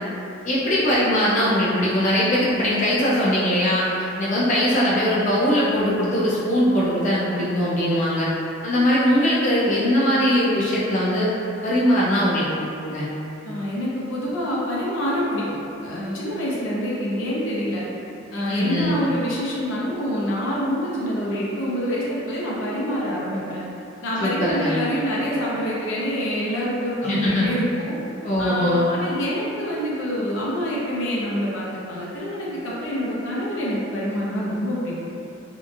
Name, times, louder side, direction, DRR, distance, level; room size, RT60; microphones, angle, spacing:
voice 1, 0.4-3.9 4.2-8.3 8.6-11.3 11.6-12.5 12.8-13.1 18.5-19.0 24.2-24.7 27.0-27.5 28.2-28.9, equal, 40° left, -8 dB, 0.4 m, -21 dB
voice 2, 13.4-15.4 15.8-17.8 18.3-23.6 24.0-28.0 28.4-34.9, equal, 90° left, -6 dB, 0.6 m, -26 dB
2.8 x 2.4 x 2.4 m, 2.8 s
head